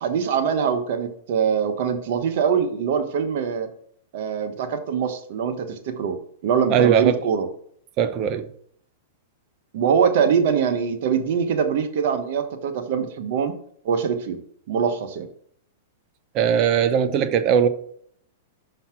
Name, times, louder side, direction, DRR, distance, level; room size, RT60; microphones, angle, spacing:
voice 1, 0.0-3.7 4.1-6.2 6.4-7.5 9.7-13.5 13.8-14.4 14.7-15.3, right 7 dB, 60° right, 1.2 m, -23 dB
voice 2, 6.7-7.2 8.0-8.4 16.3-17.7, right 8 dB, 40° right, 0.8 m, -19 dB
5.7 x 5.7 x 6.0 m
hypercardioid pair, 130°, 0 cm